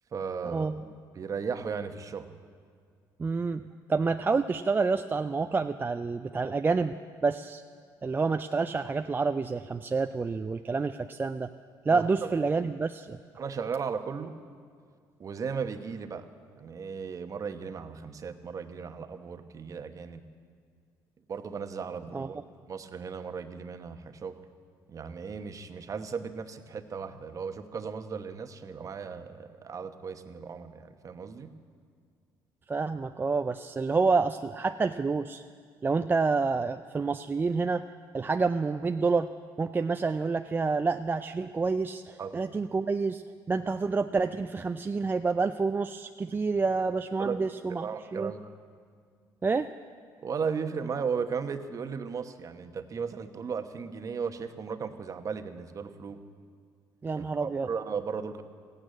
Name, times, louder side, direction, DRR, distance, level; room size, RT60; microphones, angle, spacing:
voice 1, 0.1-0.7 1.1-2.3 11.9-12.3 13.4-14.3 15.2-16.3 16.6-20.2 21.3-22.4 22.7-24.4 24.9-31.5 42.2-42.4 47.2-47.4 47.7-48.5 50.2-56.2 57.1-58.4, right 6 dB, 40° right, 8 dB, 1.0 m, -36 dB
voice 2, 3.2-3.6 3.9-6.9 7.2-7.6 8.0-11.5 11.9-13.2 22.1-22.3 32.7-35.4 35.8-37.8 38.1-39.3 39.6-48.3 49.4-49.7 57.0-57.7, right 4 dB, 25° right, 8 dB, 0.4 m, -28 dB
15.0 x 9.0 x 9.5 m, 2.1 s
supercardioid pair, 80°, 8 cm